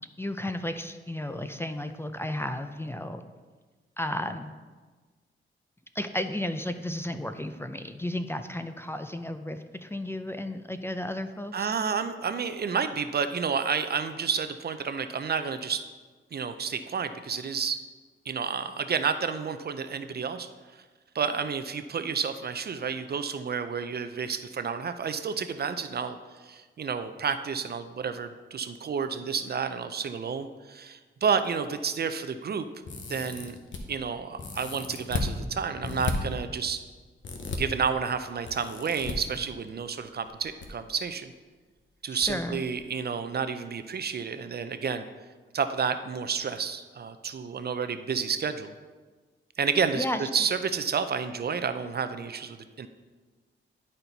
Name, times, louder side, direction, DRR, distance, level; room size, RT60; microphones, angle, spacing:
voice 1, 0.2-3.2 4.0-4.5 5.9-11.7 42.1-42.6 49.9-50.5, left 1 dB, 10° left, 9 dB, 0.4 m, -33 dB
voice 2, 11.5-15.8 16.3-17.8 18.3-20.5 21.1-26.2 26.4-32.7 33.1-33.6 33.9-36.8 37.6-41.3 42.0-45.0 45.5-48.7 49.6-52.9, right 6 dB, 50° right, 10 dB, 0.5 m, -30 dB
sound 1, 32.9-33.8 34.4-35.3 35.8-36.1 37.2-37.6 38.5-39.1 40.3-40.7 40.9-41.0 42.2-42.3 42.7-42.8, left 4 dB, 65° left, 1.0 m, -34 dB
10.5 x 4.3 x 4.0 m, 1.4 s
cardioid pair, 85°, 21 cm